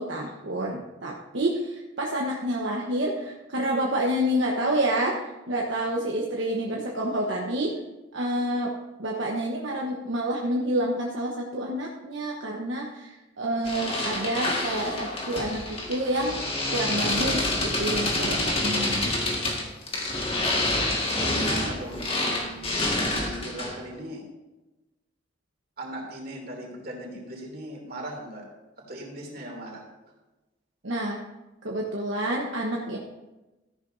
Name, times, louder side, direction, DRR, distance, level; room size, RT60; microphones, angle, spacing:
voice 1, 0.0-7.7 8.1-8.7 9.0-16.4 16.7-19.1 30.8-31.2 31.6-33.0, right 1 dB, 80° right, -2 dB, 1.1 m, -28 dB
sound 1, 13.7-23.9, left 2 dB, 30° left, 1.8 m, -27 dB
voice 2, 18.9-19.4 21.2-24.2 25.8-28.5 28.9-29.8, right 1 dB, 55° right, -1 dB, 2.8 m, -39 dB
13.5 x 11.0 x 2.7 m, 1.1 s
head